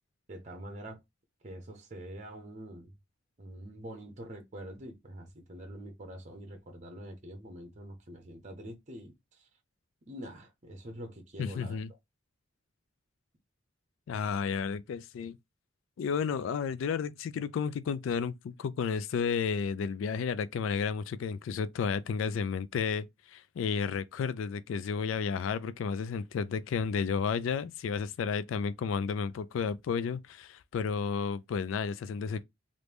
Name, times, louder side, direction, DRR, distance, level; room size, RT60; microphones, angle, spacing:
voice 1, 0.3-1.0 1.4-2.9 3.4-9.1 10.1-11.8, right 1 dB, 35° right, 0.7 m, -45 dB
voice 2, 11.4-11.9 14.1-15.4 16.0-32.4, left 6 dB, 80° left, 0.3 m, -32 dB
3.1 x 2.6 x 3.3 m
head